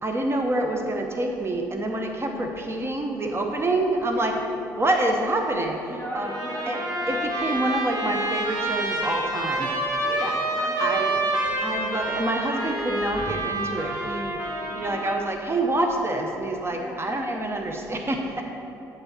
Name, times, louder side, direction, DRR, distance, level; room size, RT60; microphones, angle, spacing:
voice 1, 0.0-4.3 4.8-6.3 6.7-6.8 7.1-9.9 10.2-10.3 10.8-11.1 11.6-14.4 14.7-18.4, right 1 dB, 25° right, 3 dB, 0.7 m, -27 dB
voice 2, 4.2-4.5 5.9-7.4 10.0-11.2 11.4-11.5 14.7-15.1 16.7-17.0, equal, 10° left, -2 dB, 1.8 m, -39 dB
Trumpet, 6.1-15.3, right 1 dB, 40° right, 1.7 m, -28 dB
10.0 x 4.1 x 5.5 m, 2.9 s
figure-of-eight pair, 45°, 10 cm